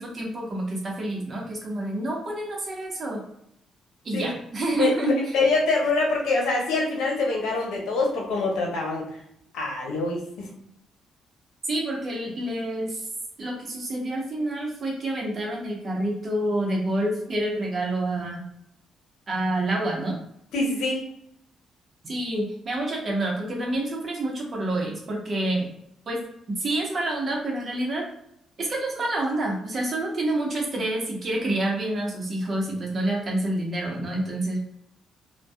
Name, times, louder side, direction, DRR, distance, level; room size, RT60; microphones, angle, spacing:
voice 1, 0.0-3.2 4.0-5.1 11.7-13.1 13.4-18.4 19.3-20.2 22.0-25.7 26.1-28.0 28.6-34.6, right 1 dB, 40° right, 0 dB, 0.8 m, -28 dB
voice 2, 4.8-9.1 9.5-10.5 20.5-21.0, left 3 dB, 85° left, -1 dB, 0.8 m, -24 dB
2.6 x 2.2 x 2.3 m, 0.74 s
cardioid pair, 90°, 0 cm